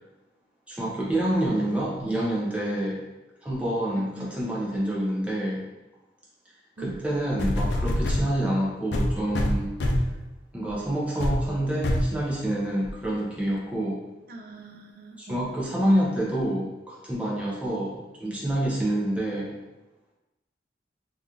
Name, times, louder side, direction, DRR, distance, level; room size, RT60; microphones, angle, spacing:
voice 1, 0.7-3.0 3.4-5.7 6.8-9.7 10.5-14.0 15.2-19.5, right 1 dB, 5° right, -5 dB, 0.7 m, -27 dB
voice 2, 3.9-4.4 6.8-7.0 14.3-15.4 17.9-18.1, right 2 dB, 50° right, 2 dB, 0.4 m, -42 dB
sound 1, 6.9-7.0 7.4-8.3 8.9-10.2 10.7-10.8 11.2-11.4 11.8-12.1 12.8-12.9, left 1 dB, 70° left, 0.4 m, -25 dB
2.9 x 2.5 x 3.7 m, 1.1 s
head